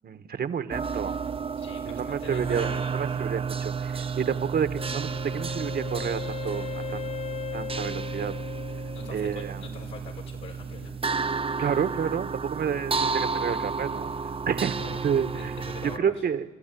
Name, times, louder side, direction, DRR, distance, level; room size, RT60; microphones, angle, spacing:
voice 1, 0.0-1.1 1.8-7.0 7.5-8.3 9.1-9.6 11.6-14.1 14.5-14.8 15.0-15.5 16.0-16.4, right 7 dB, 50° right, 10 dB, 1.2 m, -30 dB
sound 1, 0.7-16.0, right 5 dB, 30° right, 0.7 m, -32 dB
voice 2, 1.6-3.0 8.9-11.0 14.8-15.0 15.3-16.2, left 5 dB, 80° left, 0 dB, 5.4 m, -43 dB
Wind instrument woodwind instrument, 4.8-9.6, left 11 dB, 35° left, 0.9 m, -38 dB
28.5 x 13.0 x 9.3 m, 1.2 s
cardioid pair, 90°, 20 cm